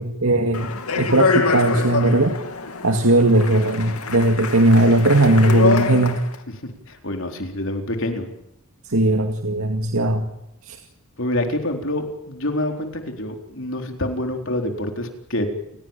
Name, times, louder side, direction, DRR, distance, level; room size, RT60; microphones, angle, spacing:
voice 1, 0.0-2.4 2.8-6.2 8.9-10.3 10.7-10.8, right 1 dB, 75° right, 4 dB, 2.3 m, -18 dB
Speech, 0.5-6.4, left 4 dB, 85° left, 2.8 m, -25 dB
voice 2, 6.9-8.3 11.2-15.5, left 1 dB, 60° left, 4 dB, 4.2 m, -26 dB
30.0 x 17.5 x 9.1 m, 0.83 s
head